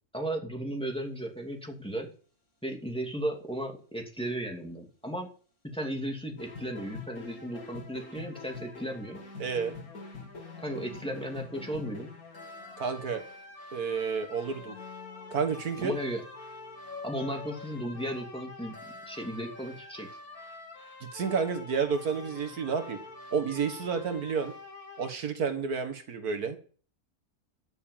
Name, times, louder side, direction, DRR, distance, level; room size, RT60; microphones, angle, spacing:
voice 1, 0.1-2.1 2.6-5.3 5.7-9.2 10.6-12.1 15.8-16.2 17.0-20.1, right 1 dB, 5° left, 1 dB, 2.6 m, -35 dB
sound 1, 0.7-1.1 10.4-11.8 12.2-13.9 14.4-16.0 16.3-16.4 16.8-17.7, left 5 dB, 35° left, 3.0 m, -49 dB
sound 2, 6.4-25.1, left 3 dB, 75° left, 2.9 m, -46 dB
voice 2, 9.4-9.7 12.8-13.2 13.7-14.7 15.3-15.9 21.1-23.0 23.3-24.5 25.0-26.6, right 6 dB, 80° right, 7 dB, 2.0 m, -30 dB
13.5 x 6.8 x 7.4 m, 0.42 s
omnidirectional pair, 1.6 m